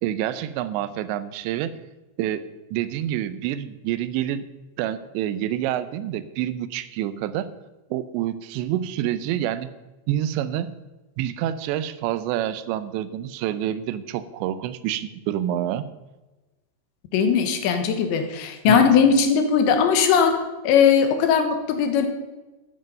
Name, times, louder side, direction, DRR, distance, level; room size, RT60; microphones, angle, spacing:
voice 1, 0.0-1.7 2.2-2.4 2.7-4.4 4.8-7.6 7.9-9.7 10.1-10.7 11.2-15.9 18.7-18.9, right 12 dB, 90° right, 14 dB, 3.0 m, -27 dB
voice 2, 17.1-22.1, left 7 dB, 90° left, 7 dB, 3.6 m, -19 dB
13.0 x 9.7 x 5.4 m, 1.1 s
omnidirectional pair, 5.0 m